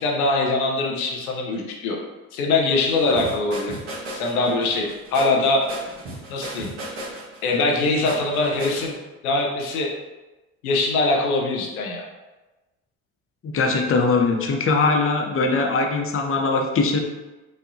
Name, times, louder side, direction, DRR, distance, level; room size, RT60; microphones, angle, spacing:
voice 1, 0.0-2.0 2.3-3.8 4.1-5.6 6.3-6.7 7.4-8.9 9.2-9.9 10.6-12.0, left 3 dB, 85° left, -1 dB, 0.6 m, -22 dB
sound 1, 2.7-8.9, right 1 dB, 65° right, 1.4 m, -36 dB
voice 2, 13.4-17.0, left 3 dB, 30° left, 3 dB, 0.7 m, -21 dB
4.7 x 2.7 x 2.6 m, 1.1 s
hypercardioid pair, 55°, 42 cm